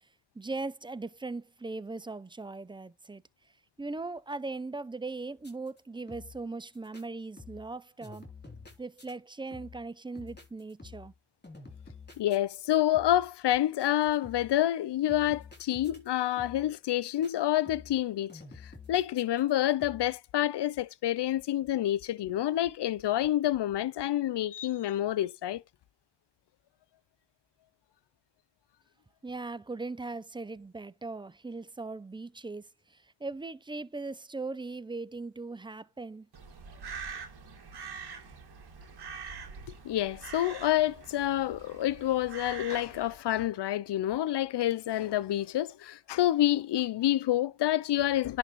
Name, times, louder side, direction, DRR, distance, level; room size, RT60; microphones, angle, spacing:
voice 1, 0.4-3.2 3.8-8.3 8.8-11.1 29.2-36.3, right 3 dB, 10° right, 0.4 m, -39 dB
sound 1, 5.4-5.8 6.1-6.5 6.7-7.0 7.4-7.8 8.0-9.1 9.5-9.9 10.2-11.2 11.4-12.7 12.9-13.3 13.8-14.6 15.1-16.1 16.4-16.8 17.0-17.3 17.7-18.0 18.3-19.5 19.8-20.2, left 4 dB, 20° left, 3.4 m, -49 dB
voice 2, 12.2-25.6 39.8-48.4, left 13 dB, 60° left, 0.6 m, -28 dB
Crow, 36.3-43.2, right 5 dB, 55° right, 2.3 m, -44 dB
11.0 x 3.9 x 3.1 m
cardioid pair, 75°, 46 cm